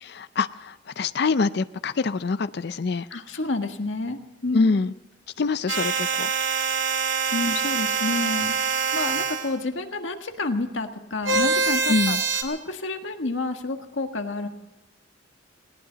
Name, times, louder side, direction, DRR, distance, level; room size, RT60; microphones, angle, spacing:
voice 1, 0.0-3.1 4.5-4.9 5.4-6.3 11.9-12.2, left 4 dB, 55° left, 13 dB, 0.5 m, -25 dB
voice 2, 3.1-4.7 7.3-8.6 8.9-12.2 12.4-14.5, left 2 dB, 70° left, 5 dB, 1.6 m, -29 dB
sound 1, 5.7-9.5 11.2-12.4, right 5 dB, 70° right, 2.2 m, -25 dB
20.0 x 18.0 x 4.0 m, 1.0 s
head